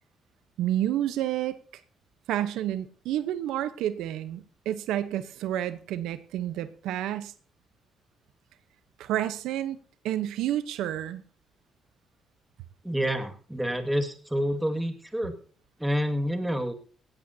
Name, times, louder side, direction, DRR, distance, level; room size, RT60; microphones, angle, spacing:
voice 1, 0.6-1.6 2.3-7.3 9.0-9.8 10.0-11.2, right 12 dB, 90° right, 12 dB, 0.8 m, -30 dB
voice 2, 12.8-15.4 15.8-16.7, equal, 5° right, 5 dB, 1.9 m, -28 dB
17.0 x 16.0 x 2.7 m, 0.42 s
cardioid pair, 90°, 0 cm